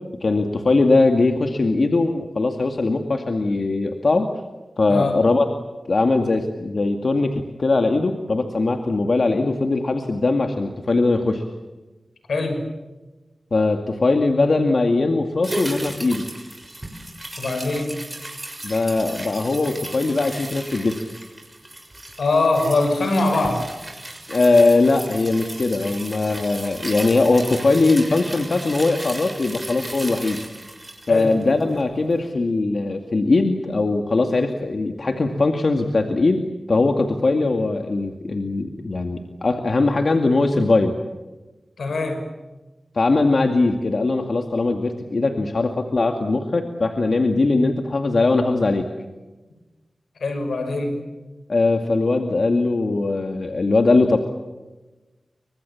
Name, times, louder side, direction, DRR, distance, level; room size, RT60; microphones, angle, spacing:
voice 1, 0.2-4.3 4.8-5.5 5.9-11.4 13.5-16.3 18.6-21.0 24.3-30.4 31.1-40.9 42.9-48.9 51.5-54.2, left 3 dB, 60° left, 5 dB, 2.3 m, -20 dB
voice 2, 12.3-12.6 17.4-17.9 22.2-23.7 31.1-31.4 41.8-42.2 50.2-51.0, left 2 dB, 90° left, 6 dB, 6.2 m, -22 dB
sound 1, 15.4-31.9 32.2-32.3, right 1 dB, 20° right, 6.5 m, -35 dB
29.5 x 25.0 x 7.3 m, 1.1 s
cardioid pair, 55°, 0 cm